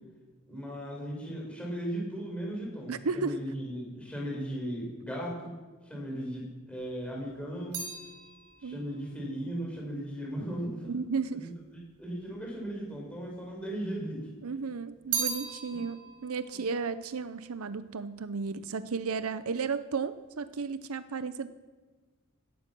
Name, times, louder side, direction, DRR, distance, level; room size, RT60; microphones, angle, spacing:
voice 1, 0.5-5.5 5.8-7.9 8.6-10.9 11.4-11.5 12.0-14.3 15.8-15.9, right 1 dB, 5° left, -3 dB, 5.4 m, -37 dB
voice 2, 2.9-3.4 8.6-8.8 10.8-11.5 14.4-16.0 16.2-21.5, right 5 dB, 70° right, 13 dB, 0.6 m, -34 dB
sound 1, 6.8-11.2 12.0-12.8 13.1-14.2 14.5-18.1 18.3-18.9, right 6 dB, 90° right, 4.5 m, -39 dB
17.5 x 12.0 x 6.1 m, 1.4 s
head